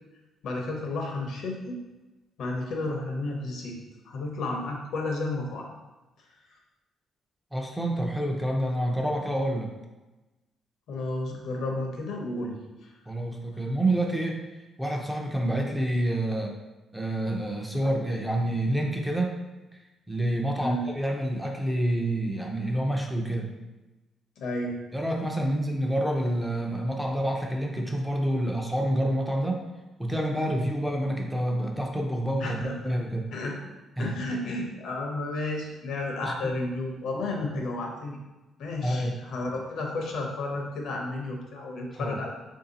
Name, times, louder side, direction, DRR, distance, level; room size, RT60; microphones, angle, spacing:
voice 1, 0.4-1.8 2.4-3.8 4.0-5.7 10.9-12.6 12.8-12.9 20.6-20.9 24.4-24.8 32.4-32.9 33.3-33.6 34.0-38.2 38.6-42.3, left 2 dB, 75° left, 1 dB, 0.8 m, -32 dB
voice 2, 7.5-9.7 13.1-14.5 14.8-16.5 16.9-19.3 20.1-23.5 24.9-29.7 30.0-33.3 34.0-34.1 36.2-36.3 38.8-39.2 42.0-42.2, right 1 dB, 5° right, 1 dB, 0.6 m, -28 dB
3.2 x 2.7 x 4.0 m, 1.1 s
cardioid pair, 90°, 0 cm